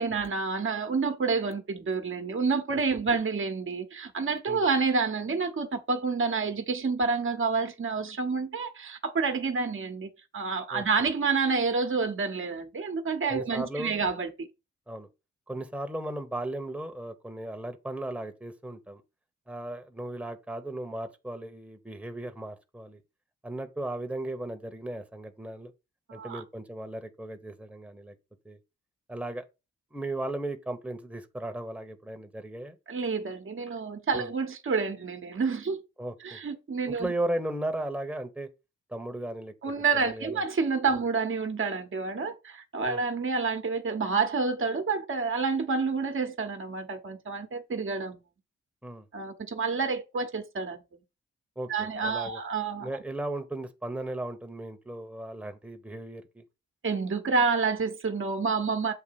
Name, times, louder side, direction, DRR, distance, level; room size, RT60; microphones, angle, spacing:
voice 1, 0.0-14.3 26.1-26.4 32.9-35.8 36.2-37.1 39.6-48.2 49.1-50.8 51.7-52.9 56.8-58.9, right 4 dB, 45° right, 1.3 m, -29 dB
voice 2, 13.3-14.1 14.9-15.1 15.5-19.0 19.5-23.0 23.4-25.7 26.1-28.1 28.4-28.6 29.1-29.4 29.9-32.8 34.1-34.3 36.0-36.4 36.8-38.5 38.9-39.5 39.9-40.4 40.9-41.0 42.8-43.0 48.8-49.1 51.6-52.4 52.8-56.4, right 1 dB, 5° right, 1.3 m, -36 dB
7.8 x 2.8 x 5.9 m
hypercardioid pair, 40°, 30 cm